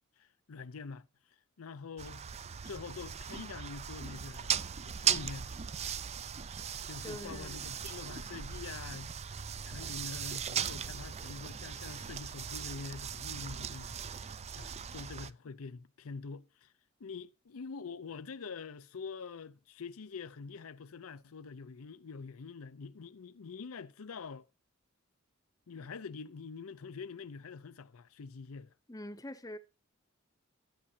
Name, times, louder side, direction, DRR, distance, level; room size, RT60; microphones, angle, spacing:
voice 1, 0.2-1.1 1.6-5.5 6.9-16.7 17.0-24.5 25.7-28.7, left 5 dB, 85° left, 0.6 m, -45 dB
sound 1, 2.0-15.3, right 8 dB, 30° right, 0.4 m, -38 dB
voice 2, 7.0-7.7 28.9-29.6, left 1 dB, 15° left, 0.7 m, -44 dB
13.0 x 8.8 x 2.8 m
head